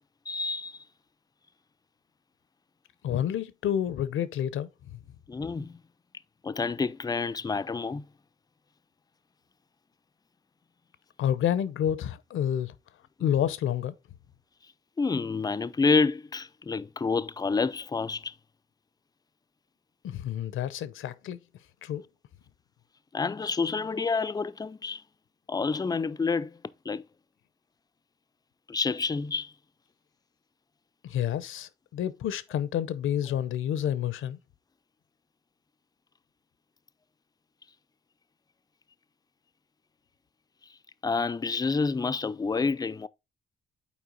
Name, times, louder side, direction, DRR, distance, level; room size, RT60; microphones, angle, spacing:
voice 1, 0.3-0.8 5.3-5.8 6.4-8.0 15.0-18.3 23.1-25.0 25.5-26.6 26.9-27.0 28.7-29.5 41.0-43.1, left 4 dB, 20° left, 0.4 m, -28 dB
voice 2, 3.0-5.0 11.2-12.7 13.2-14.0 20.0-21.4 21.8-22.0 31.0-34.4, left 10 dB, 75° left, 0.7 m, -29 dB
7.2 x 4.5 x 3.9 m
cardioid pair, 70°, 21 cm